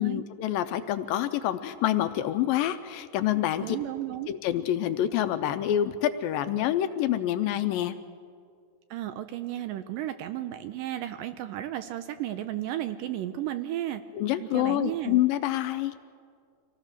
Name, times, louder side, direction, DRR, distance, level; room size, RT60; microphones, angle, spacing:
voice 1, 0.0-3.8 4.3-8.0 14.1-15.9, left 12 dB, 80° left, 10 dB, 2.2 m, -27 dB
voice 2, 3.6-4.3 8.9-14.0 14.4-15.2, right 13 dB, 80° right, 10 dB, 2.1 m, -33 dB
25.0 x 16.5 x 6.5 m, 2.2 s
omnidirectional pair, 4.4 m